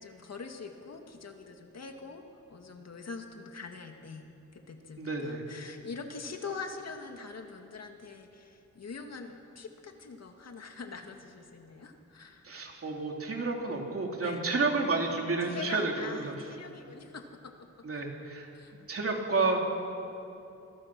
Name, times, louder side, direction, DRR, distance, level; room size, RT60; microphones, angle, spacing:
voice 1, 0.0-2.2 2.5-4.3 4.5-12.5 14.2-14.7 15.4-17.7 18.5-18.7, left 4 dB, 60° left, 4 dB, 2.1 m, -43 dB
voice 2, 5.0-5.4 12.4-16.3 17.8-18.5 18.9-19.6, right 3 dB, 50° right, 1 dB, 3.1 m, -30 dB
26.0 x 21.0 x 6.2 m, 2.8 s
wide cardioid pair, 130°, 29 cm